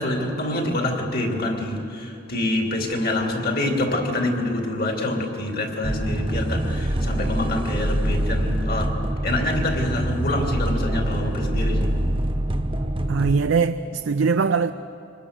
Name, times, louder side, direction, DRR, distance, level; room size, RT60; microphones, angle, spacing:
voice 1, 0.0-12.0, left 1 dB, 50° left, 2.9 m, -26 dB
sound 1, 5.8-13.4, right 1 dB, 25° right, 0.9 m, -25 dB
voice 2, 13.1-14.7, right 5 dB, 75° right, 0.5 m, -21 dB
25.5 x 20.5 x 6.7 m
head